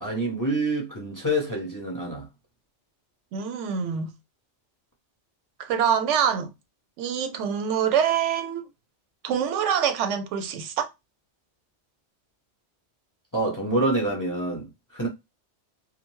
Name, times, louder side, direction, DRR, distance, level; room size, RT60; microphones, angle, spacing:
voice 1, 0.0-2.3 13.3-15.1, right 1 dB, 20° left, 0.5 m, -27 dB
voice 2, 3.3-4.1 5.6-6.5 7.0-8.7 9.2-10.9, right 8 dB, 85° right, 0.9 m, -25 dB
2.6 x 2.1 x 3.0 m
omnidirectional pair, 1.2 m